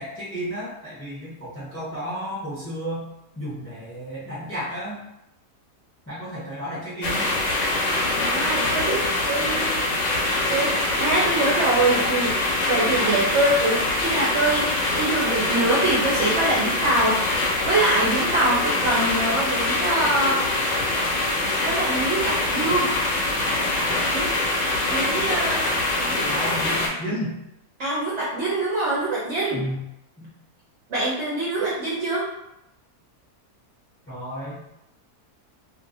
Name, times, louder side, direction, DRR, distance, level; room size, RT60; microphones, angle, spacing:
voice 1, 0.0-3.1 3.4-5.0 6.1-7.3 26.2-27.4 29.5-29.8 30.2-30.3 34.1-34.6, equal, 15° left, -8 dB, 0.5 m, -32 dB
sound 1, 7.0-26.9, left 2 dB, 80° left, 1.2 m, -24 dB
voice 2, 8.2-9.0 9.3-9.8 10.5-12.3 12.7-20.5 21.6-22.9 24.1-24.3 24.9-26.4 27.8-29.6 30.9-32.2, right 2 dB, 60° right, -7 dB, 0.7 m, -24 dB
2.6 x 2.5 x 2.6 m, 0.87 s
omnidirectional pair, 1.7 m